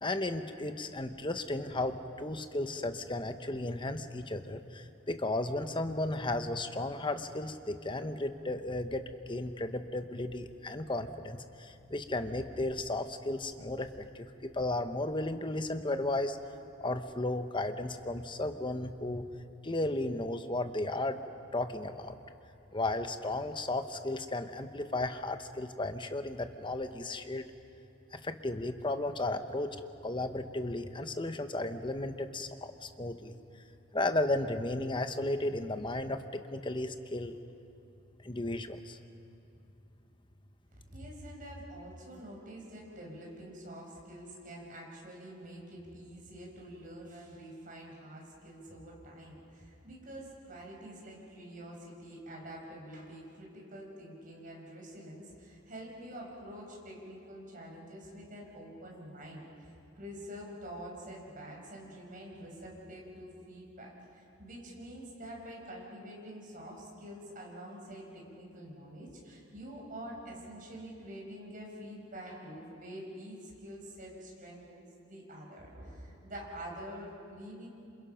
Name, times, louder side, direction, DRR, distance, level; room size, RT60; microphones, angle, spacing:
voice 1, 0.0-16.4 16.8-19.3 19.6-21.2 21.5-22.1 22.7-27.5 28.1-29.7 30.0-33.3 33.9-37.4 38.2-39.0, left 2 dB, 25° left, 8 dB, 1.0 m, -34 dB
voice 2, 40.9-77.7, equal, 40° right, -1 dB, 5.7 m, -46 dB
27.5 x 27.0 x 5.8 m, 2.7 s
head